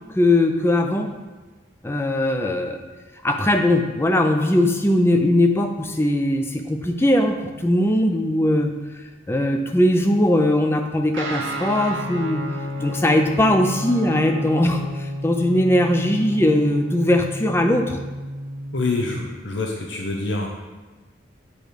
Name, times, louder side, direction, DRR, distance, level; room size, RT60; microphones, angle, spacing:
voice 1, 0.1-1.1 1.8-2.8 3.2-8.7 9.3-12.4 12.8-18.0, left 1 dB, 10° left, 4 dB, 0.4 m, -20 dB
Guitar, 11.1-19.2, equal, 85° right, 1.0 m, -31 dB
voice 2, 18.7-20.6, left 3 dB, 70° left, 0 dB, 0.7 m, -26 dB
8.5 x 3.1 x 5.0 m, 1.2 s
head